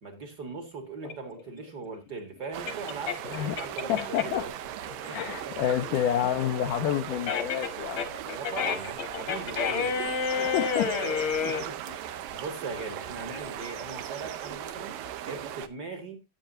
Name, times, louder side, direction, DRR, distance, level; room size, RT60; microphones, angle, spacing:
voice 1, 0.0-4.5 5.1-5.6 8.3-9.9 10.9-12.0 12.3-16.2, right 4 dB, 40° right, 1.4 m, -40 dB
sound 1, 1.0-4.5 4.9-11.6, left 6 dB, 50° left, 1.6 m, -31 dB
sound 2, 2.5-15.7, right 11 dB, 70° right, 2.5 m, -38 dB
voice 2, 3.9-4.5 5.0-8.0 10.3-11.4, left 10 dB, 80° left, 1.9 m, -29 dB
14.0 x 9.1 x 2.7 m
omnidirectional pair, 4.4 m